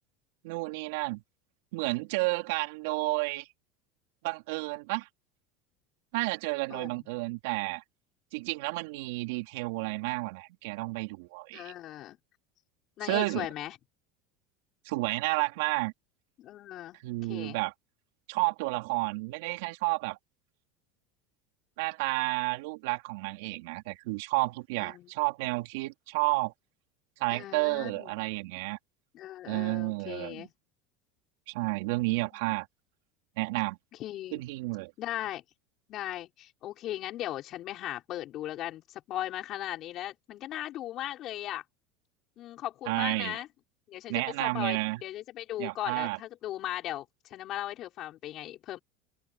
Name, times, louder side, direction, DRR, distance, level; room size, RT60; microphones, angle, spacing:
voice 1, 0.4-1.2 1.7-3.5 4.2-5.1 6.1-7.8 8.3-11.7 13.0-13.5 14.8-15.9 17.0-17.7 18.3-20.2 21.8-26.5 27.2-28.8 29.4-30.5 31.5-32.7 33.4-33.8 34.3-34.9 42.9-43.4 44.1-45.0 45.6-46.2, right 24 dB, 75° right, 3.4 m, -31 dB
voice 2, 11.5-12.2 13.0-13.7 16.4-17.0 17.3-17.6 24.8-25.1 27.3-28.1 29.1-30.5 34.0-34.4 35.0-35.4 35.9-41.6 42.4-43.5 43.9-48.8, left 13 dB, 50° left, 6.0 m, -38 dB
supercardioid pair, 110°, 0 cm